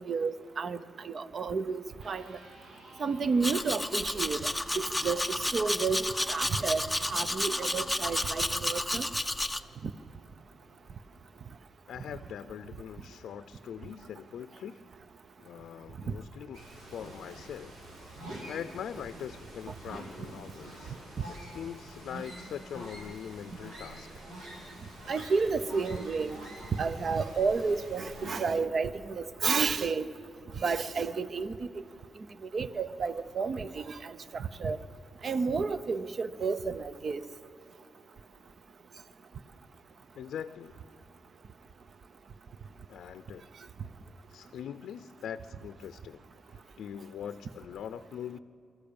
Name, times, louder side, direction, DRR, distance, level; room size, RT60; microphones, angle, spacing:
voice 1, 0.0-2.4 3.0-4.5 4.7-9.1 9.8-9.9 25.1-26.4 26.7-30.1 30.6-31.5 32.5-34.8 35.2-37.2, right 4 dB, 40° right, 14 dB, 0.7 m, -31 dB
Electric guitar, 1.9-9.9, right 1 dB, 75° right, 3.8 m, -54 dB
Domestic sounds home sounds, 3.4-9.6, left 1 dB, 5° left, 0.6 m, -31 dB
voice 2, 11.9-14.8 15.4-17.8 18.5-21.0 21.3-24.1 40.2-40.9 42.9-43.5 44.3-46.2 46.8-48.4, left 9 dB, 75° left, 12 dB, 0.5 m, -42 dB
sound 1, 16.5-28.3, right 1 dB, 90° right, 6.3 m, -46 dB
23.5 x 14.0 x 8.7 m, 2.9 s
cardioid pair, 140°, 0 cm